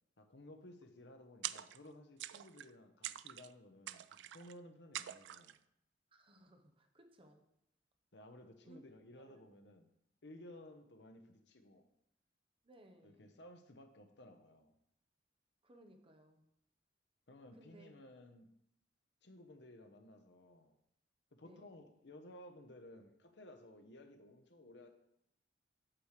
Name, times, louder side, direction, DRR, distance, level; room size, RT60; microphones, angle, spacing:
voice 1, 0.2-5.5 8.1-9.9 10.2-11.9 13.0-14.7 17.3-18.5 19.2-20.8 21.3-24.9, left 1 dB, 70° left, 6 dB, 0.9 m, -57 dB
sound 1, 1.4-1.9 2.2-2.7 3.0-3.5 3.9-4.5 4.9-5.6, right 13 dB, 80° right, 0.3 m, -45 dB
voice 2, 6.1-7.4 8.6-8.8 9.3-9.4 12.6-13.3 15.6-16.5 17.6-17.9 21.4-21.7, right 1 dB, 30° right, 5 dB, 0.9 m, -62 dB
8.6 x 3.3 x 6.5 m, 0.78 s
head